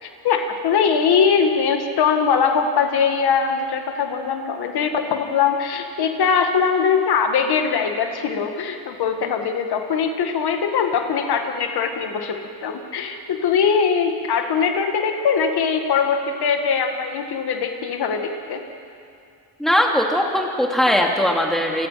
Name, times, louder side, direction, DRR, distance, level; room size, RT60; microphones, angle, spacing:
voice 1, 0.0-18.6, left 6 dB, 75° left, 5 dB, 2.1 m, -21 dB
voice 2, 19.6-21.9, equal, ahead, 0 dB, 2.5 m, -19 dB
29.0 x 22.5 x 5.9 m, 2.5 s
cardioid pair, 135°, 39 cm